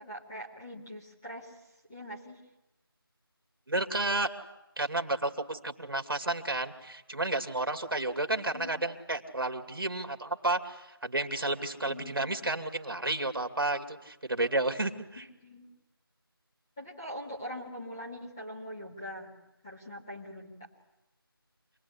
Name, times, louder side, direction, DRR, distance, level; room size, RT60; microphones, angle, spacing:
voice 1, 0.0-1.6 1.9-2.4 8.5-8.7 11.8-12.4 15.2-15.7 16.8-19.4 19.6-20.7, equal, 10° left, -7 dB, 1.9 m, -43 dB
voice 2, 3.7-4.3 4.8-15.2, right 2 dB, 65° right, 7 dB, 2.6 m, -31 dB
27.0 x 20.0 x 9.9 m, 0.94 s
figure-of-eight pair, 180°, 13 cm